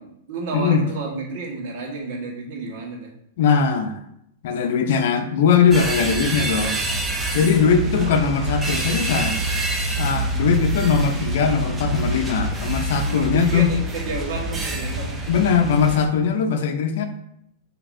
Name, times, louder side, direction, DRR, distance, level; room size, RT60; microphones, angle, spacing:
voice 1, 0.0-3.1 7.7-8.2 13.0-15.2, right 3 dB, 50° right, -1 dB, 1.4 m, -31 dB
voice 2, 0.5-0.8 3.4-4.0 4.4-6.8 7.3-9.4 10.0-13.7 15.3-17.1, left 6 dB, 60° left, 7 dB, 0.5 m, -20 dB
sound 1, 5.7-16.1, right 2 dB, 10° right, 0.6 m, -26 dB
6.0 x 2.9 x 2.6 m, 0.77 s
supercardioid pair, 155°, 0 cm